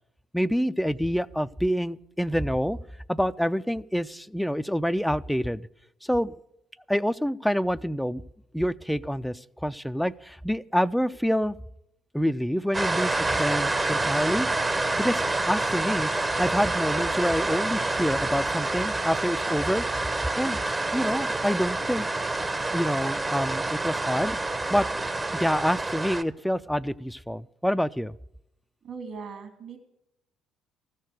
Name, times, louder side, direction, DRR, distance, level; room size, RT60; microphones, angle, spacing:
voice 1, 0.3-2.8 3.1-5.7 6.0-6.3 6.9-8.2 8.5-11.6 12.1-14.5 15.0-16.1 16.4-19.8 20.4-20.6 20.9-22.1 22.7-24.4 24.7-24.9 25.3-28.2, equal, ahead, 12 dB, 0.4 m, -27 dB
sound 1, 12.7-26.2, right 2 dB, 25° right, 0.9 m, -27 dB
sound 2, 12.9-18.4, right 2 dB, 85° right, 3.2 m, -44 dB
voice 2, 28.8-29.8, right 5 dB, 55° right, 6 dB, 2.7 m, -39 dB
14.5 x 6.5 x 9.3 m, 0.82 s
hypercardioid pair, 55°, 0 cm